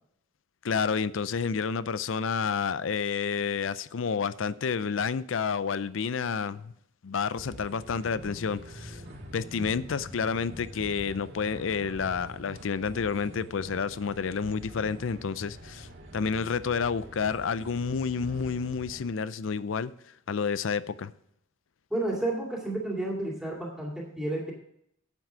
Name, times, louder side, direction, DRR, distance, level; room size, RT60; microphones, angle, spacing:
voice 1, 0.6-6.7 7.0-9.0 9.3-19.9 20.3-21.1, left 5 dB, 70° left, 0.5 m, -30 dB
sound 1, 7.4-19.0, equal, 55° right, 2.0 m, -45 dB
voice 2, 21.9-24.5, right 1 dB, ahead, 2.2 m, -31 dB
9.4 x 7.3 x 5.0 m
head